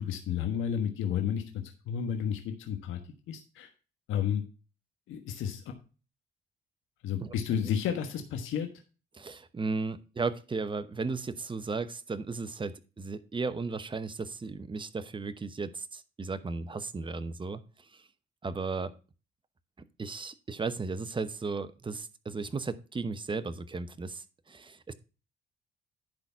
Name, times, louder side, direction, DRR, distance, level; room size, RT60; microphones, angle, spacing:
voice 1, 0.0-3.0 3.3-3.7 4.1-4.4 5.1-5.6 7.0-8.7, left 8 dB, 85° left, 5 dB, 1.3 m, -31 dB
voice 2, 9.1-17.6 18.4-18.9 20.0-24.9, right 4 dB, 25° right, 12 dB, 0.9 m, -35 dB
10.5 x 4.1 x 5.7 m, 0.34 s
cardioid pair, 90°, 20 cm